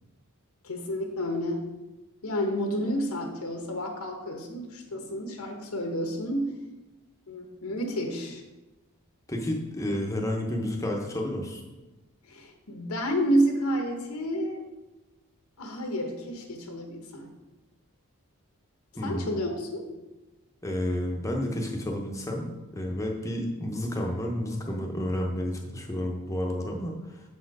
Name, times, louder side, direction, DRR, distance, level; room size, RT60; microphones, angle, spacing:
voice 1, 0.6-1.7 2.2-6.6 7.3-8.4 12.3-14.6 15.6-17.3 19.0-19.8, equal, 80° left, 3 dB, 1.0 m, -30 dB
voice 2, 9.3-11.6 19.0-19.3 20.6-27.2, left 1 dB, 15° left, 1 dB, 0.8 m, -31 dB
7.1 x 4.4 x 4.7 m, 1.1 s
head